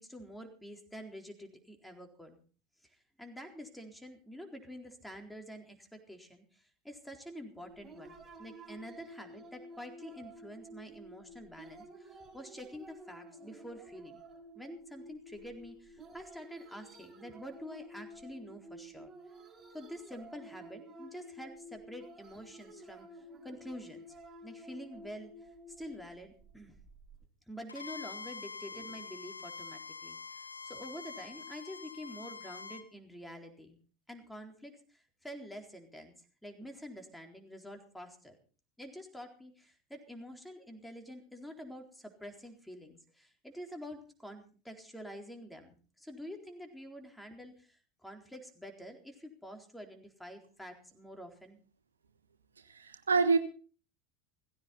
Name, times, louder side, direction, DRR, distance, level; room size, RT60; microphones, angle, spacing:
voice 1, 0.0-2.4 2.8-14.2 14.6-19.1 19.7-24.1 24.4-25.3 25.8-26.8 27.5-33.8 34.1-36.1 36.4-38.3 38.8-51.6, equal, 5° left, 4 dB, 4.0 m, -47 dB
sound 1, 7.6-27.2, right 1 dB, 20° right, 4.9 m, -52 dB
Bowed string instrument, 27.7-32.9, left 5 dB, 90° left, 1.1 m, -45 dB
voice 2, 52.7-53.4, right 4 dB, 80° right, 9 dB, 1.2 m, -26 dB
17.5 x 16.0 x 4.2 m, 0.39 s
figure-of-eight pair, 75°, 0 cm